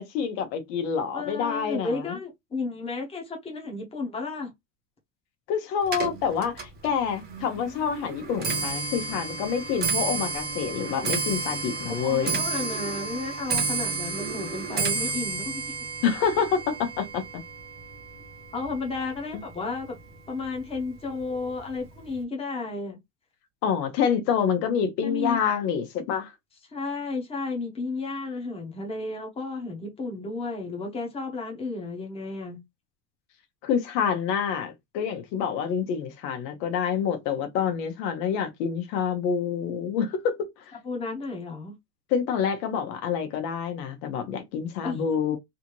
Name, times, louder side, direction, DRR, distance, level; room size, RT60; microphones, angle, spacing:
voice 1, 0.0-2.2 5.5-12.4 16.0-17.2 23.6-26.3 33.6-40.5 42.1-45.4, left 7 dB, 85° left, 1.2 m, -27 dB
voice 2, 1.1-4.5 11.9-15.7 18.5-20.0 20.3-23.0 25.0-25.4 26.7-32.6 40.7-41.7 44.8-45.0, left 3 dB, 10° left, 0.9 m, -33 dB
Clock, 5.8-19.2 19.5-20.0 20.8-20.9 21.2-21.6 21.8-21.9, right 4 dB, 20° right, 1.0 m, -31 dB
3.3 x 2.7 x 2.9 m
cardioid pair, 160°, 48 cm